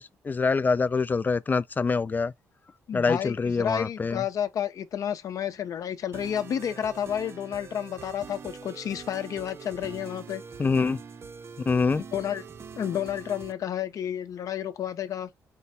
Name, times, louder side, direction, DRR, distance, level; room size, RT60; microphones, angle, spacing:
voice 1, 0.0-2.3 2.9-4.2 10.6-11.0 11.7-12.0, left 4 dB, 30° left, 0.4 m, -25 dB
voice 2, 2.9-10.4 12.1-12.4 12.8-15.3, left 9 dB, 60° left, 0.7 m, -31 dB
sound 1, 6.1-13.5, right 6 dB, 40° right, 0.5 m, -43 dB
4.5 x 2.2 x 4.1 m
cardioid pair, 75°, 6 cm